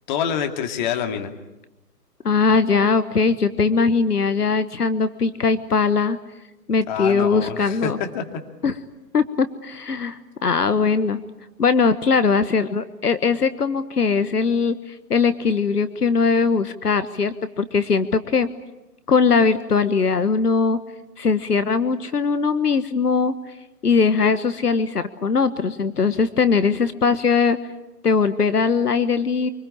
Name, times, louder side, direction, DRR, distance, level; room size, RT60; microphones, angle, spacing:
voice 1, 0.1-1.3 6.9-8.2, left 8 dB, 30° left, 5 dB, 2.3 m, -26 dB
voice 2, 2.2-6.2 6.7-8.0 8.6-8.7 9.1-11.2 11.6-18.5 19.1-20.8 21.2-23.3 23.8-27.6 28.0-29.5, left 5 dB, 70° left, 12 dB, 1.4 m, -20 dB
25.5 x 24.5 x 8.7 m, 1.0 s
figure-of-eight pair, 135°, 48 cm